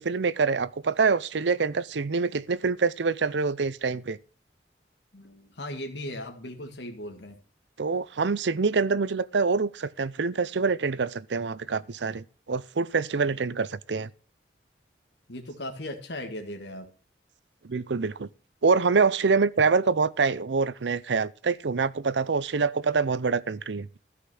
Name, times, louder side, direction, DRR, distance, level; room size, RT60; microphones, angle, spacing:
voice 1, 0.0-4.2 7.8-14.1 17.6-18.3 18.6-23.9, right 4 dB, 90° right, 0.6 m, -25 dB
voice 2, 5.1-7.4 15.3-16.9, left 1 dB, 80° left, 1.8 m, -37 dB
13.5 x 5.9 x 7.7 m
head